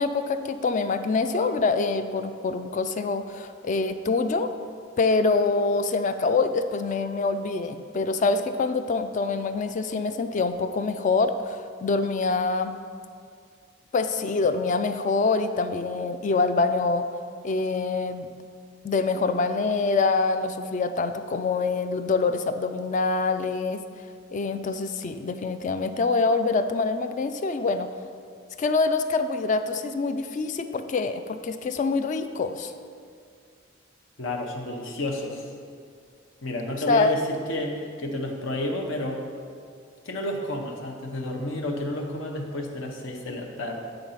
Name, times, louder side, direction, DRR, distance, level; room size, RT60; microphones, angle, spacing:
voice 1, 0.0-4.5 5.0-12.7 13.9-17.0 17.4-18.3 18.8-23.8 24.3-27.9 28.6-32.7 36.9-37.1, left 3 dB, 40° left, 9 dB, 0.3 m, -25 dB
voice 2, 34.2-35.5 36.4-39.2 40.0-43.9, left 1 dB, 80° left, 1 dB, 0.9 m, -31 dB
9.0 x 3.9 x 5.6 m, 2.3 s
head